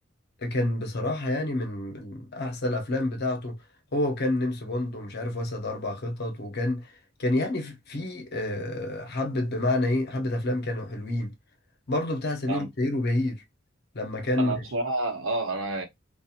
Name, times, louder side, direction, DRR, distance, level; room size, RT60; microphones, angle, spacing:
voice 1, 0.4-3.6 3.9-6.9 7.2-11.3 11.9-13.4 13.9-14.5, left 1 dB, 55° left, 0.8 m, -28 dB
voice 2, 14.4-15.8, right 2 dB, 85° right, 0.8 m, -29 dB
2.8 x 2.4 x 2.4 m
head